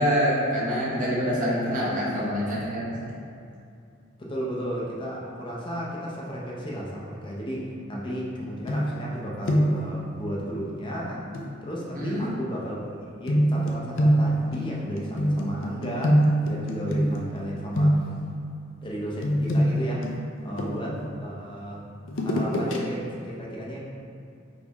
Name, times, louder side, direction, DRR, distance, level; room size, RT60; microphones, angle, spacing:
voice 1, 0.0-3.2 11.9-12.3 20.7-20.9, equal, 40° right, -6 dB, 1.0 m, -26 dB
voice 2, 4.2-11.2 11.6-16.2 16.5-18.0 18.8-20.0 20.4-21.8 22.2-23.8, equal, 25° left, -4 dB, 0.6 m, -33 dB
sound 1, 8.7-9.2 9.4-9.9 11.3-11.5 13.3-17.4 17.7-18.3 19.2-21.0 22.1-22.8 23.2-23.3, equal, 70° left, 0.5 m, -24 dB
4.1 x 4.0 x 3.0 m, 2.5 s
head